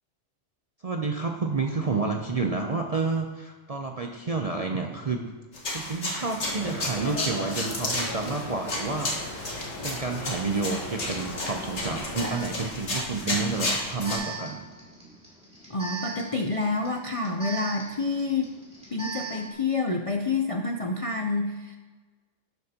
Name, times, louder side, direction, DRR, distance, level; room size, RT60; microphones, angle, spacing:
voice 1, 0.8-5.3 5.7-9.5 9.8-14.6, right 4 dB, 45° right, 3 dB, 0.5 m, -30 dB
sound 1, 5.5-14.2, left 2 dB, 65° left, 1.9 m, -32 dB
sound 2, 6.4-12.2, left 2 dB, 90° left, 2.5 m, -38 dB
Alarm, 11.3-11.4 12.1-19.5, right 3 dB, 5° right, 2.5 m, -40 dB
voice 2, 15.7-18.5 18.9-21.8, left 3 dB, 40° left, 2 dB, 0.5 m, -28 dB
12.0 x 7.9 x 2.9 m, 1.3 s
omnidirectional pair, 1.3 m